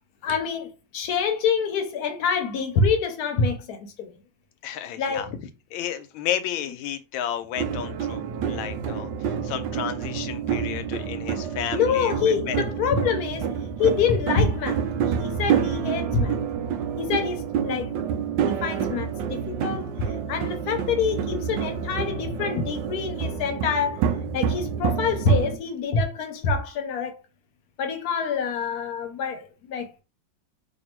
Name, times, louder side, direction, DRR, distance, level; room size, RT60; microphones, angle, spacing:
voice 1, 0.2-4.1 5.0-5.2 11.7-13.5 13.8-14.8 15.2-16.4 17.0-27.1 27.8-30.0, left 5 dB, 65° left, 1.1 m, -26 dB
voice 2, 4.6-5.3 5.7-12.1 12.5-12.6, left 10 dB, 85° left, 1.4 m, -32 dB
sound 1, 7.6-25.6, right 7 dB, 75° right, 1.2 m, -28 dB
3.4 x 2.6 x 4.4 m
omnidirectional pair, 2.1 m